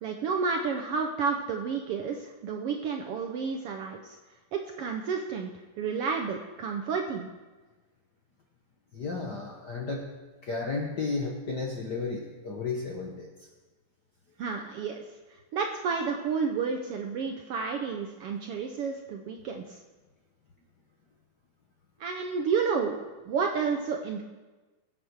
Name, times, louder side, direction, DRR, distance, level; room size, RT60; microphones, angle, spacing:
voice 1, 0.0-4.1 4.5-5.5 5.8-7.3 14.4-15.0 15.5-19.8 22.0-24.2, right 5 dB, 70° right, 3 dB, 1.4 m, -31 dB
voice 2, 8.9-10.1 10.4-13.5, left 4 dB, 55° left, 0 dB, 1.1 m, -33 dB
21.0 x 8.4 x 4.6 m, 1.2 s
omnidirectional pair, 3.4 m